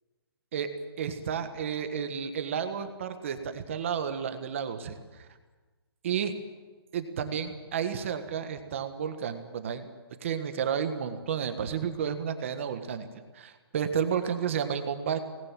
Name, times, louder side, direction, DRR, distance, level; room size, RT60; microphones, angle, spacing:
voice 1, 1.0-5.0 6.0-6.3 6.9-9.9 10.2-13.1 13.3-15.2, right 7 dB, 30° right, 8 dB, 1.5 m, -31 dB
25.0 x 19.0 x 7.6 m, 1.3 s
hypercardioid pair, 175°, 14 cm